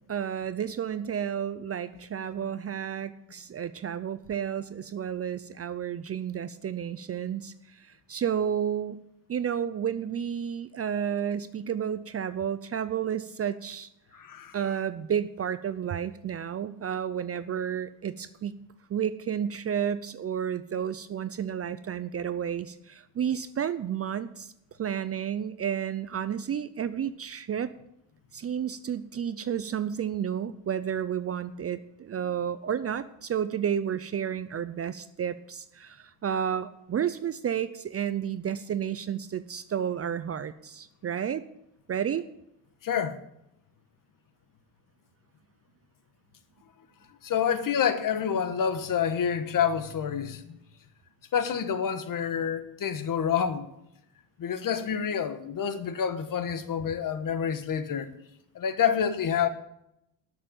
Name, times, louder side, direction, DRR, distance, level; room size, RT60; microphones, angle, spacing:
voice 1, 0.1-7.5 8.1-9.0 9.3-13.9 14.5-18.5 18.9-24.5 24.8-27.7 28.3-41.4 41.9-42.3, right 8 dB, 35° right, 0.5 m, -31 dB
voice 2, 14.2-14.5 42.8-43.2 47.2-50.4 51.3-53.7 54.4-58.1 58.5-59.5, left 8 dB, 45° left, 1.3 m, -28 dB
12.5 x 6.8 x 8.9 m
cardioid pair, 125°, 44 cm